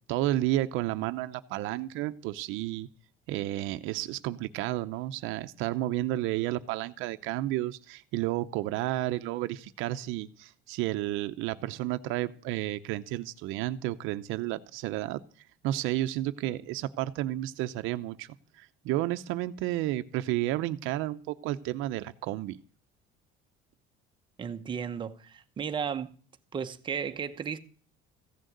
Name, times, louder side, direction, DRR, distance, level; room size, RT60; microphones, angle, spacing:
voice 1, 0.1-2.9 3.3-15.2 15.6-18.3 18.6-22.6, right 15 dB, 70° right, 0.8 m, -31 dB
voice 2, 24.4-26.1 26.5-27.6, right 7 dB, 20° right, 0.9 m, -34 dB
15.5 x 6.5 x 9.2 m
cardioid pair, 165°, 21 cm